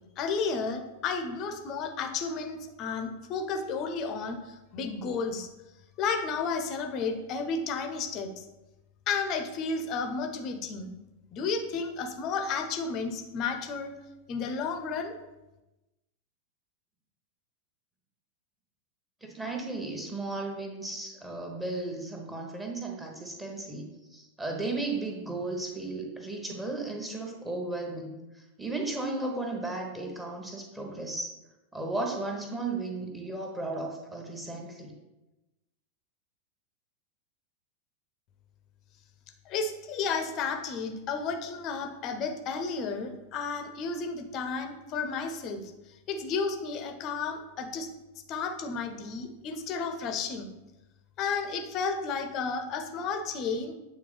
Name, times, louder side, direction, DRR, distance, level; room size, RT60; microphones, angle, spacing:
voice 1, 0.2-5.5 6.0-8.4 9.1-10.9 11.3-13.9 14.3-15.1 39.4-45.6 46.1-47.9 48.3-50.5 51.2-53.7, left 5 dB, 35° left, 6 dB, 0.7 m, -32 dB
voice 2, 19.2-31.3 31.7-34.9, right 2 dB, 10° right, 1 dB, 1.1 m, -35 dB
8.5 x 3.5 x 3.3 m, 1.0 s
figure-of-eight pair, 90°, 0 cm